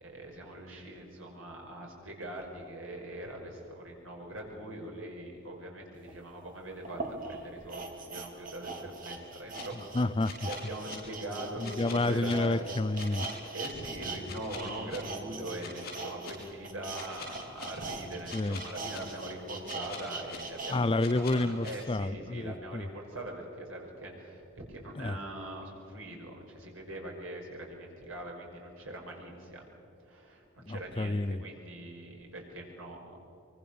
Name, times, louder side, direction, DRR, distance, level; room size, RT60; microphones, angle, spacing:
voice 1, 0.0-7.0 7.3-9.9 10.4-12.9 13.3-29.6 30.0-33.2, right 1 dB, 85° right, 0 dB, 5.7 m, -42 dB
sound 1, 6.1-6.2 6.8-14.2 14.5-20.8 21.2-21.3, right 3 dB, 45° right, 2.8 m, -41 dB
sound 2, 9.5-9.6 10.2-11.0 11.6-12.3 12.9-13.7 14.2-15.0 15.6-16.3 16.9-17.7 18.3-19.0 19.6-20.4 21.0-21.7, left 5 dB, 50° left, 6.5 m, -44 dB
voice 2, 9.9-10.5 11.6-13.3 18.3-18.6 20.7-22.9 25.0-25.2 30.6-31.4, left 2 dB, 25° left, 16 dB, 0.5 m, -29 dB
24.5 x 23.5 x 7.0 m, 2.7 s
head